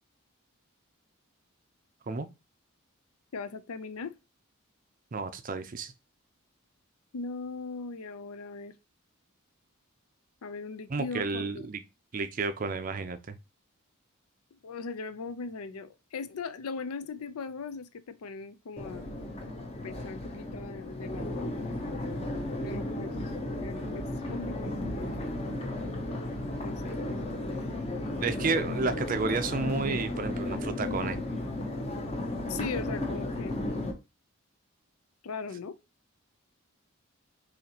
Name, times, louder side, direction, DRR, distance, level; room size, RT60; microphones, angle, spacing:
voice 1, 3.3-4.1 7.1-8.7 10.4-11.7 14.6-19.1 19.8-21.5 22.6-23.2 23.6-24.8 26.6-26.9 32.5-33.6 35.2-35.8, left 4 dB, 85° left, 0.5 m, -39 dB
voice 2, 5.1-5.9 10.9-11.8 12.1-13.4 27.1-27.4 28.2-31.2, right 4 dB, 40° right, 0.4 m, -31 dB
Crowd, 18.8-33.9, left 1 dB, 30° left, 0.7 m, -34 dB
4.1 x 2.8 x 2.7 m
head